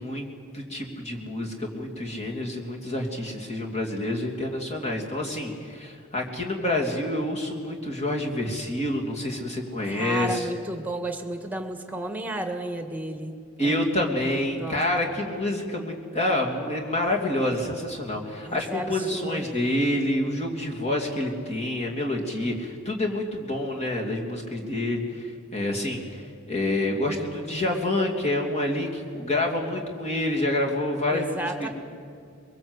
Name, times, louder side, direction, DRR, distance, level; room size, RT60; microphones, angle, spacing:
voice 1, 0.0-10.5 13.6-31.7, left 1 dB, 30° left, 0 dB, 3.0 m, -28 dB
voice 2, 9.8-14.1 14.6-14.8 18.4-19.7 31.1-31.7, right 1 dB, 10° right, 5 dB, 1.7 m, -33 dB
23.0 x 22.5 x 8.1 m, 2.3 s
head